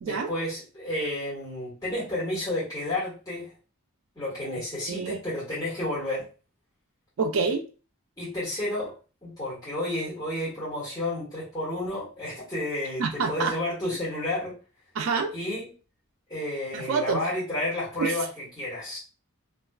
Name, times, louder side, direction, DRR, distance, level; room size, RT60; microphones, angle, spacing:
voice 1, 0.0-3.5 4.1-6.3 8.2-8.9 9.2-14.6 15.3-15.6 16.3-19.0, left 1 dB, 15° left, -11 dB, 1.2 m, -31 dB
voice 2, 7.2-7.7 13.0-13.5 15.0-15.3 16.7-17.2 18.0-18.1, right 4 dB, 60° right, 4 dB, 0.4 m, -27 dB
2.5 x 2.3 x 2.2 m, 0.34 s
head